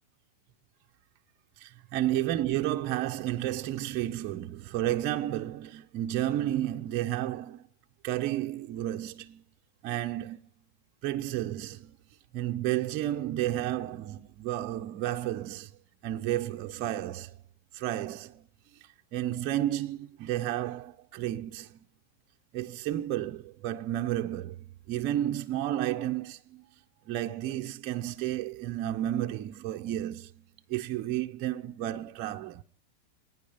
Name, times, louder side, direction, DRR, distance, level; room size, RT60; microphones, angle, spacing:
voice 1, 1.6-7.7 8.0-9.4 9.8-10.4 11.0-12.0 12.3-15.7 16.0-17.4 17.7-18.5 19.1-21.8 22.5-26.6 27.1-30.4 30.7-32.6, right 13 dB, 40° right, 0.8 m, -32 dB
25.5 x 9.6 x 5.1 m
supercardioid pair, 140°, 0 cm